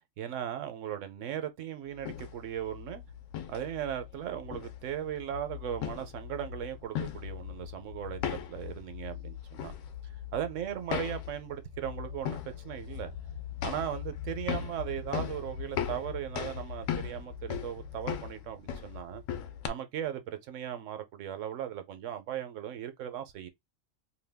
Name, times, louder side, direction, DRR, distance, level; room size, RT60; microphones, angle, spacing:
voice 1, 0.2-3.0 3.5-9.7 10.3-13.1 13.6-19.2 19.6-23.5, right 10 dB, 75° right, 1.0 m, -37 dB
sound 1, 1.9-19.7, left 9 dB, 85° left, 1.0 m, -39 dB
2.6 x 2.2 x 3.3 m
omnidirectional pair, 1.3 m